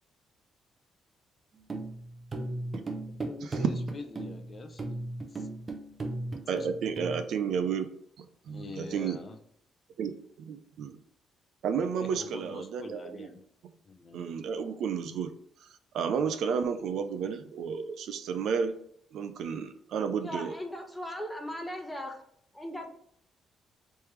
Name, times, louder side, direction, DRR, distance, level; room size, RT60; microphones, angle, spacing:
sound 1, 1.6-7.2, right 2 dB, 35° right, 0.6 m, -36 dB
voice 1, 3.1-4.8 5.3-5.5 6.5-6.7 8.5-9.4 12.0-13.4 13.9-14.3, left 3 dB, 40° left, 6 dB, 0.6 m, -44 dB
voice 2, 6.5-7.9 8.2-9.2 10.0-10.1 10.4-11.0 11.6-13.3 14.1-15.3 15.6-15.7 15.9-18.7 19.1-20.5, right 6 dB, 75° right, 9 dB, 0.4 m, -32 dB
voice 3, 20.2-22.2 22.5-22.9, equal, 10° left, 3 dB, 0.8 m, -38 dB
3.3 x 3.1 x 3.2 m, 0.67 s
cardioid pair, 90°, 0 cm